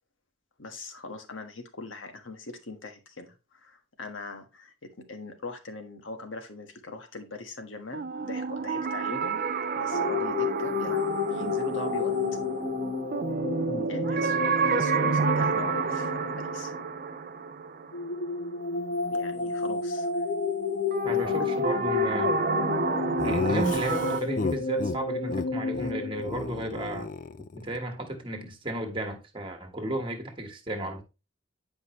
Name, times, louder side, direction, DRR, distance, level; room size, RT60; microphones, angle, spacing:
voice 1, 0.6-4.7 5.1-9.4 9.8-12.1 13.9-14.4 14.6-16.8 19.1-20.2 21.1-21.6 22.5-22.7, left 3 dB, 90° left, 1.4 m, -41 dB
sound 1, 7.9-18.8 20.9-24.2, right 5 dB, 45° right, 0.4 m, -29 dB
sound 2, 9.9-17.0 17.9-26.4, left 5 dB, 65° left, 1.1 m, -31 dB
voice 2, 21.0-22.4 23.2-27.1 27.5-31.0, right 1 dB, 25° right, 1.4 m, -34 dB
Laughter, 23.2-25.0 25.3-25.5 25.7-25.9 26.2-27.8, left 4 dB, 40° left, 0.4 m, -32 dB
9.7 x 5.3 x 3.0 m
head